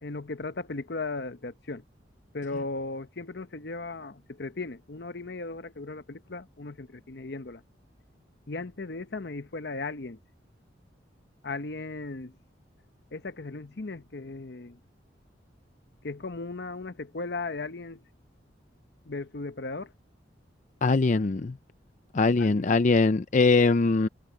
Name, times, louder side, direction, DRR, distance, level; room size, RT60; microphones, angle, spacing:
voice 1, 0.0-1.8 2.3-7.6 8.5-10.2 11.4-12.3 13.1-14.8 16.0-18.0 19.0-19.9 22.4-22.8, left 3 dB, 60° left, 0.9 m, -36 dB
voice 2, 20.8-21.5 22.1-24.1, left 3 dB, 45° left, 0.5 m, -22 dB
head